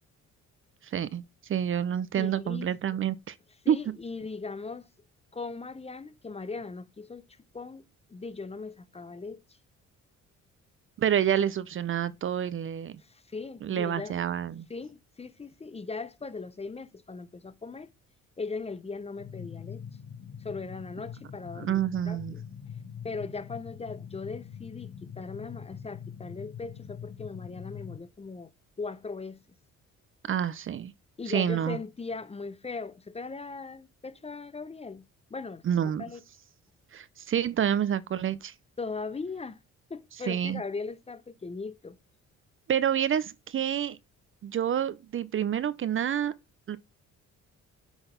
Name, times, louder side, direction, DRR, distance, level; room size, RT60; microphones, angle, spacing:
voice 1, 0.8-1.2 1.5-3.4 3.7-3.8 11.0-13.0 13.6-14.7 21.6-22.3 30.3-30.9 31.3-31.8 35.6-36.0 36.9-38.5 40.3-40.6 42.7-44.0 44.4-46.3 46.7-46.8, right 9 dB, 45° right, 0.5 m, -28 dB
voice 2, 2.1-2.7 3.6-4.9 5.3-7.2 7.5-9.4 13.0-14.1 14.7-17.9 18.4-19.8 20.4-21.8 22.1-22.4 23.0-28.5 28.8-29.4 31.2-35.6 36.0-36.2 38.8-39.6 39.9-42.0, left 4 dB, 20° left, 0.6 m, -39 dB
sound 1, 19.2-28.0, left 8 dB, 55° left, 1.3 m, -43 dB
6.1 x 4.0 x 5.1 m
cardioid pair, 90°, 30 cm